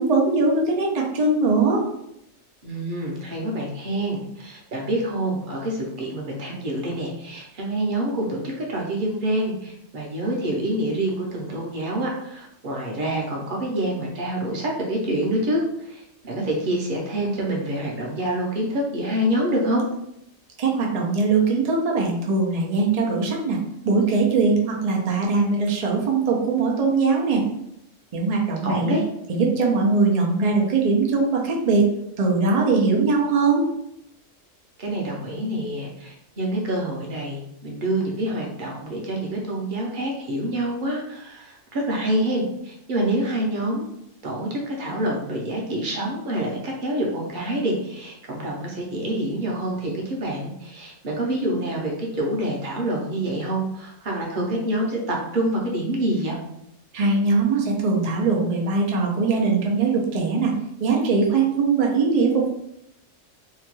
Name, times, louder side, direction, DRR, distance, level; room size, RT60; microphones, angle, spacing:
voice 1, 0.0-1.8 20.6-23.6 23.8-27.4 28.1-29.0 29.3-31.9 32.2-33.6 56.9-60.5 60.8-62.5, right 4 dB, 80° right, -1 dB, 0.3 m, -21 dB
voice 2, 2.6-19.9 28.6-29.0 34.8-43.8 44.2-56.4, right 1 dB, 50° right, -2 dB, 0.7 m, -27 dB
2.8 x 2.2 x 3.0 m, 0.78 s
omnidirectional pair, 1.3 m